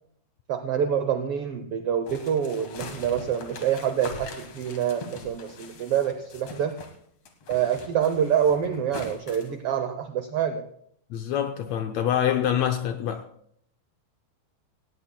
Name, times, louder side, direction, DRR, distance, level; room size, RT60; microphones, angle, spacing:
voice 1, 0.5-6.7 7.5-10.6, right 8 dB, 80° right, 1.3 m, -26 dB
sound 1, 2.1-7.0 7.3-9.5, left 3 dB, 55° left, 2.3 m, -42 dB
voice 2, 11.1-13.3, left 10 dB, 75° left, 1.6 m, -25 dB
18.0 x 17.5 x 2.2 m
omnidirectional pair, 3.6 m